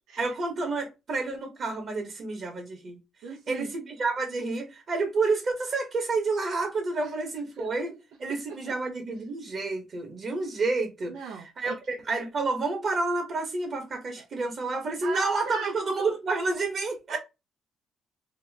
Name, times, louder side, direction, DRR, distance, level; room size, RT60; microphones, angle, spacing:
voice 1, 0.2-3.0 3.5-7.9 8.2-17.2, right 3 dB, 50° right, 1.0 m, -29 dB
voice 2, 3.2-3.7 7.0-7.1 7.6-7.7 8.6-8.7 11.1-11.7 14.2-14.3 15.0-15.7 17.1-17.2, right 5 dB, 90° right, 0.6 m, -38 dB
2.8 x 2.1 x 3.2 m
cardioid pair, 90°, 0 cm